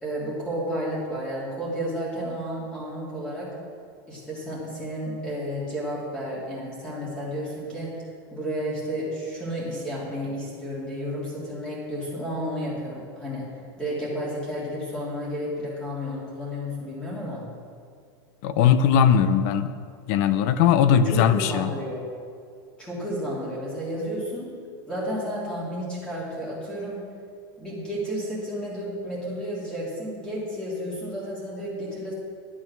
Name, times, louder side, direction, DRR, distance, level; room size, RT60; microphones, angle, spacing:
voice 1, 0.0-3.6 4.1-17.5 20.9-22.1 22.8-24.6 24.9-27.0 27.6-32.1, equal, 5° left, -7 dB, 3.1 m, -32 dB
voice 2, 18.4-19.7 20.1-21.7, left 8 dB, 50° left, 12 dB, 0.6 m, -19 dB
11.0 x 8.7 x 6.2 m, 2.2 s
supercardioid pair, 160°, 12 cm